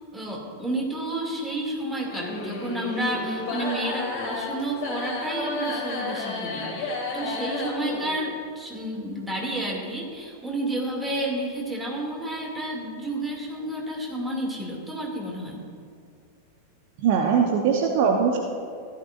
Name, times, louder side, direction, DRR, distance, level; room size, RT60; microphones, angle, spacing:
voice 1, 0.0-15.6, right 1 dB, 10° right, -2 dB, 2.3 m, -31 dB
sound 1, 2.0-8.1, left 2 dB, 45° left, 2.7 m, -31 dB
voice 2, 17.0-18.4, right 6 dB, 50° right, 2 dB, 0.8 m, -21 dB
15.5 x 11.5 x 2.5 m, 2.2 s
figure-of-eight pair, 90°, 0 cm